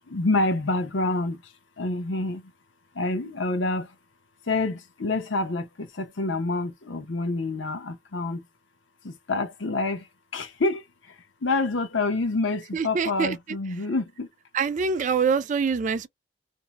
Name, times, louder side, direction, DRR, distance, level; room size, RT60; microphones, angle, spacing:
voice 1, 0.1-2.5 2.9-3.9 4.4-8.5 9.0-10.1 10.3-14.3, left 2 dB, 85° left, 0.8 m, -27 dB
voice 2, 12.7-13.4 14.5-16.1, right 5 dB, 40° right, 0.3 m, -24 dB
2.7 x 2.1 x 2.9 m
head